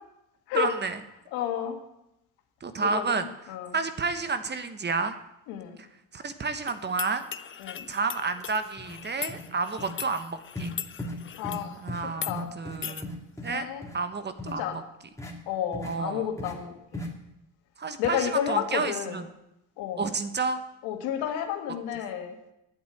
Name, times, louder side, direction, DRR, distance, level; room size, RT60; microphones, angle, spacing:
voice 1, 0.5-1.0 2.6-3.3 3.7-5.2 5.8-5.9 6.1-7.3 7.9-10.7 11.8-13.1 13.4-13.6 13.9-14.8 15.8-16.3 17.8-19.2 20.0-20.6, right 4 dB, 30° right, 10 dB, 1.2 m, -30 dB
voice 2, 1.3-1.8 2.8-3.7 5.5-5.8 7.6-7.8 11.4-11.8 12.3-12.5 13.5-13.8 14.6-14.8 15.5-17.0 18.0-19.2 19.8-20.1 20.8-22.4, left 10 dB, 85° left, 4 dB, 2.0 m, -31 dB
sound 1, 6.7-11.7 12.1-12.3 12.8-13.0, left 8 dB, 35° left, 0.7 m, -39 dB
sound 2, 8.3-8.4 8.8-9.0 9.3-9.5 9.8-9.9 10.5-10.7 11.0-11.2 11.4-11.6 11.9-12.0 12.3-13.5 13.8-14.0 14.4-14.5 15.2-15.3 15.7-16.0 16.4-16.5 16.9-17.1, left 1 dB, 10° left, 2.6 m, -37 dB
9.6 x 8.2 x 9.2 m, 0.85 s
supercardioid pair, 90°, 37 cm